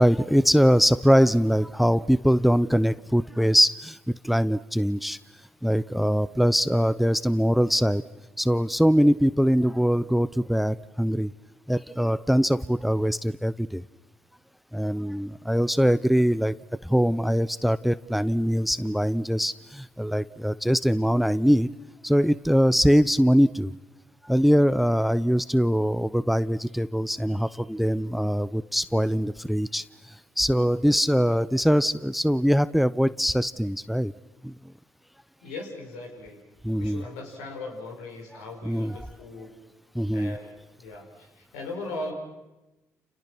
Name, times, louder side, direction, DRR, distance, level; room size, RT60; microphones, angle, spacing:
voice 1, 0.0-5.2 5.6-8.0 8.4-11.3 11.7-13.8 14.7-16.5 16.8-21.7 22.0-23.7 24.2-29.8 30.4-34.1 34.4-34.5 36.6-37.0 38.6-39.0 39.9-40.4, equal, ahead, 18 dB, 0.9 m, -22 dB
voice 2, 35.4-36.4 36.8-39.5 40.1-42.1, left 2 dB, 80° left, 2 dB, 5.9 m, -38 dB
30.0 x 29.5 x 6.3 m, 1.0 s
hypercardioid pair, 50°, 7 cm